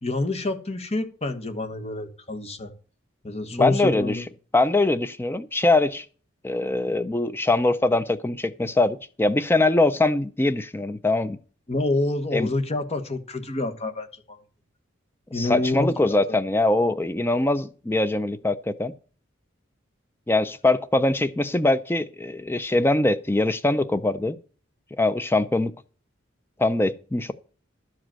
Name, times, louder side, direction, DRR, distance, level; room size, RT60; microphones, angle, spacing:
voice 1, 0.0-2.7 3.2-4.2 11.7-14.4 15.3-15.9 16.3-16.4, left 2 dB, 30° left, 1.3 m, -27 dB
voice 2, 3.5-4.2 4.5-6.1 6.4-11.4 12.3-12.5 15.3-18.9 20.3-24.4 25.0-25.7 26.6-27.3, left 2 dB, 10° left, 0.4 m, -22 dB
12.0 x 5.1 x 7.5 m
head